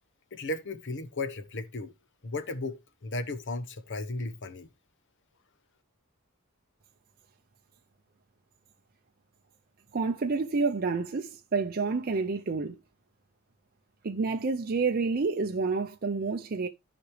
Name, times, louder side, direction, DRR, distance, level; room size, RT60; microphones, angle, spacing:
voice 1, 0.3-1.9 2.2-4.7, left 2 dB, 55° left, 1.0 m, -35 dB
voice 2, 9.9-12.8 14.0-16.7, right 4 dB, 45° right, 0.6 m, -29 dB
14.5 x 5.0 x 3.2 m
head